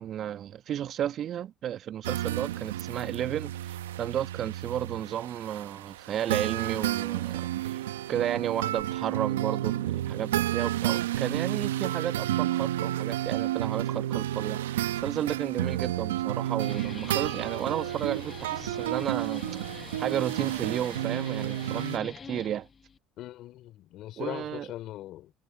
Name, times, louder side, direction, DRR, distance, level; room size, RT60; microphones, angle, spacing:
voice 1, 0.0-7.8 8.1-22.7 24.2-24.7, right 10 dB, 50° right, 1.6 m, -33 dB
sound 1, 2.0-22.0, right 13 dB, 80° right, 1.4 m, -31 dB
Guitar, 16.4-23.0, left 5 dB, 35° left, 1.6 m, -44 dB
voice 2, 23.2-25.3, left 14 dB, 60° left, 4.4 m, -40 dB
hypercardioid pair, 60°, 0 cm